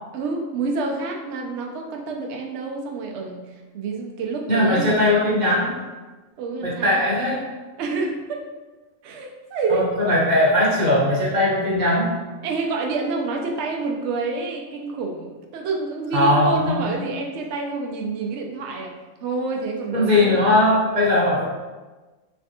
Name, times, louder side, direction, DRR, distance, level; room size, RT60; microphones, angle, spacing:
voice 1, 0.1-3.5 3.7-5.3 6.4-7.0 7.8-8.4 9.0-10.2 12.4-18.9 19.2-20.4, right 3 dB, 65° right, 1 dB, 0.8 m, -28 dB
voice 2, 4.5-5.8 6.6-7.5 9.7-12.1 16.1-17.1 19.9-21.4, left 1 dB, 40° right, -5 dB, 1.0 m, -19 dB
3.3 x 3.3 x 2.7 m, 1.2 s
omnidirectional pair, 1.4 m